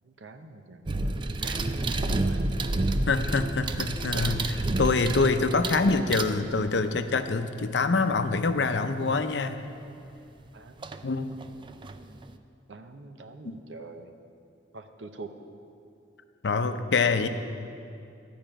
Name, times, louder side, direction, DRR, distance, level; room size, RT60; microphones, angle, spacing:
voice 1, 0.2-0.8 1.2-2.6 4.1-4.6 10.5-10.9 12.7-14.1 14.7-15.3, right 2 dB, 80° right, 8 dB, 0.8 m, -43 dB
sound 1, 0.9-6.8 9.3-9.4 10.8-11.0 11.4-12.4, right 2 dB, 25° right, 0.4 m, -29 dB
voice 2, 3.1-9.6 11.0-11.3 13.4-13.6 16.4-17.3, left 4 dB, 65° left, 9 dB, 0.6 m, -25 dB
12.5 x 5.2 x 8.9 m, 2.6 s
head